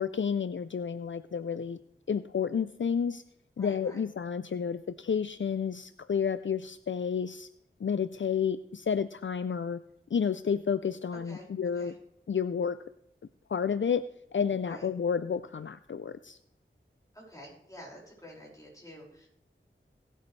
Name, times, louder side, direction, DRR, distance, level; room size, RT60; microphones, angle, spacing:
voice 1, 0.0-1.8 2.1-3.2 3.6-7.5 7.8-9.8 10.1-11.9 12.3-12.8 13.5-14.0 14.3-16.4, left 7 dB, 65° left, 13 dB, 0.4 m, -30 dB
voice 2, 3.6-4.0 11.1-11.5 11.7-12.0 14.7-14.9 17.1-19.3, equal, 15° left, -4 dB, 5.5 m, -48 dB
18.5 x 8.4 x 3.2 m, 0.74 s
wide cardioid pair, 50°, 21 cm